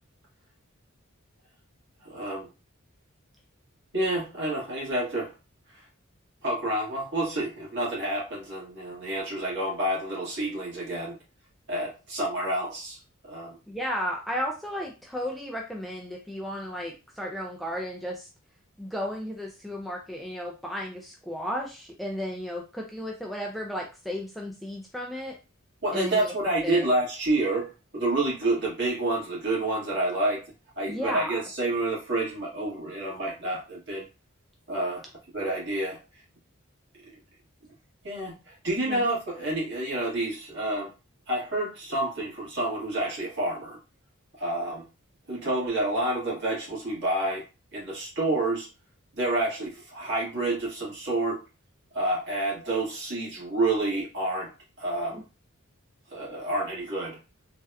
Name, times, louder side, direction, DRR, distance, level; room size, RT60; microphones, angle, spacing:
voice 1, 2.1-2.5 3.9-5.3 6.4-11.2 11.7-13.0 13.3-13.6 25.8-27.7 27.9-30.4 30.8-34.0 34.7-35.0 35.3-36.0 38.0-40.9 41.3-43.8 44.4-44.8 45.3-47.4 47.7-48.7 49.1-51.4 51.9-54.5 54.8-55.2 56.1-57.2, right 2 dB, 55° right, -5 dB, 1.7 m, -28 dB
voice 2, 13.7-18.3 18.8-25.3 25.9-26.2 26.6-26.8 30.9-31.4 38.9-39.0 55.1-55.2, equal, ahead, -1 dB, 0.3 m, -34 dB
3.3 x 2.7 x 2.2 m, 0.30 s
head